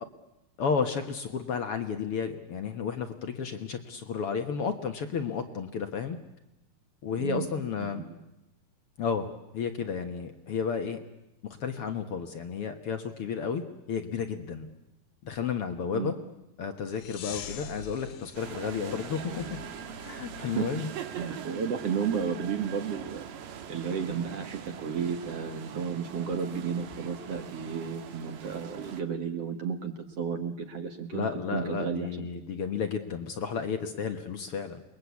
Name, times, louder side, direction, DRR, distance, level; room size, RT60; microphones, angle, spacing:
voice 1, 0.6-6.2 7.0-8.0 9.0-11.0 11.6-14.7 15.2-16.1 16.6-19.6 20.0-20.9 31.1-34.8, left 6 dB, 55° left, 7 dB, 1.9 m, -32 dB
voice 2, 7.1-7.5 7.9-8.1 15.9-16.1 20.4-20.7 21.1-23.2 23.7-32.3, right 6 dB, 50° right, 6 dB, 2.3 m, -33 dB
sound 1, 16.9-21.4, left 7 dB, 85° left, 3.3 m, -45 dB
sound 2, 18.3-29.0, right 8 dB, 80° right, 3.2 m, -42 dB
28.5 x 21.5 x 8.4 m, 0.90 s
omnidirectional pair, 3.9 m